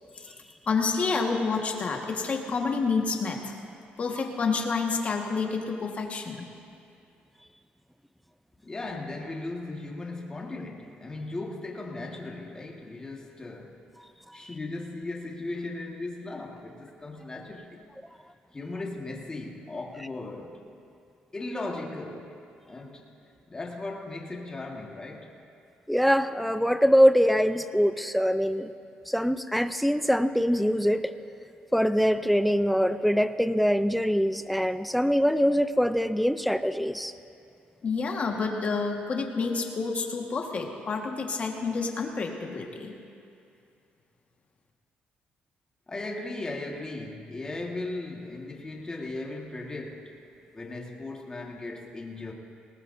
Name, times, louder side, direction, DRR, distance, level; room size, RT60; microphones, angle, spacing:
voice 1, 0.7-3.5 4.0-6.5 37.8-42.9, left 4 dB, 40° left, 1 dB, 1.6 m, -29 dB
voice 2, 8.6-13.8 14.3-17.8 18.5-20.6 21.3-22.4 22.7-23.0 23.5-25.3 45.9-50.1 50.5-52.3, left 2 dB, 20° left, -1 dB, 1.7 m, -37 dB
voice 3, 25.9-28.7 29.1-31.1 31.7-37.1, equal, ahead, 11 dB, 0.5 m, -23 dB
19.0 x 19.0 x 2.7 m, 2.5 s
cardioid pair, 115°, 4 cm